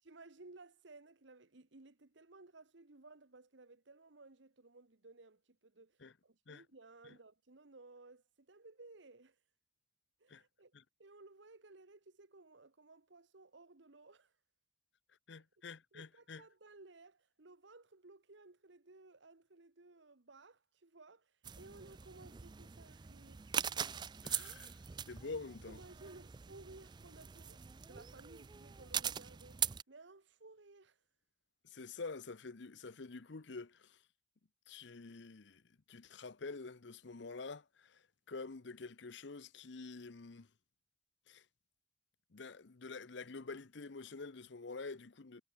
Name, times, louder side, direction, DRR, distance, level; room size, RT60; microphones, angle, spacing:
voice 1, 0.1-9.4 10.2-10.7 11.0-14.3 15.3-15.4 15.9-23.5 25.7-31.0, right 3 dB, 65° right, 1.2 m, -58 dB
voice 2, 15.3-16.4 24.2-24.8 25.1-25.8 31.6-34.0 34.7-35.6 35.9-40.5 41.3-41.4 42.3-45.4, left 4 dB, 60° left, 0.8 m, -47 dB
sound 1, 21.4-29.8, right 8 dB, 20° right, 0.3 m, -42 dB
head